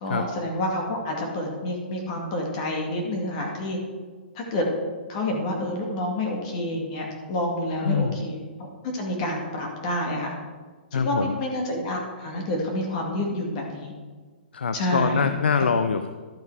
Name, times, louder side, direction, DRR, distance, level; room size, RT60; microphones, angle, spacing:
voice 1, 0.0-3.8 4.3-4.7 5.1-8.4 8.9-10.3 10.9-13.9 14.7-15.3, left 1 dB, 40° left, 1 dB, 2.0 m, -28 dB
voice 2, 7.8-8.2 10.9-11.4 14.5-16.1, left 5 dB, 85° left, 9 dB, 0.6 m, -24 dB
12.0 x 5.5 x 4.8 m, 1.4 s
hypercardioid pair, 145°, 5 cm